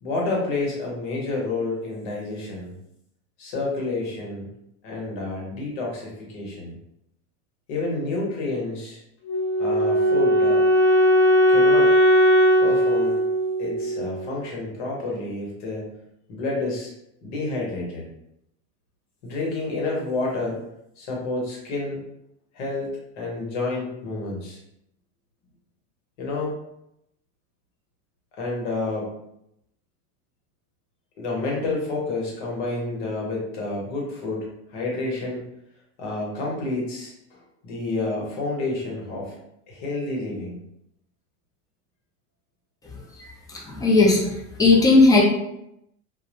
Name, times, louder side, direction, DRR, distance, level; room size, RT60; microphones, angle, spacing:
voice 1, 0.0-2.7 3.4-4.5 4.8-6.7 7.7-9.0 9.6-10.7 11.5-12.3 12.6-13.2 13.6-15.9 16.3-16.9 17.2-18.0 19.2-20.6 21.0-22.0 22.5-24.6 26.2-26.6 28.4-29.1 31.2-35.4 36.0-37.4 37.6-39.3 39.7-40.6, left 2 dB, 80° left, -2 dB, 1.0 m, -29 dB
Wind instrument woodwind instrument, 9.2-14.3, equal, 40° left, 1.1 m, -18 dB
voice 2, 43.5-44.2 44.6-45.2, left 3 dB, 10° left, -2 dB, 0.5 m, -16 dB
2.2 x 2.1 x 2.8 m, 0.81 s
supercardioid pair, 115°, 34 cm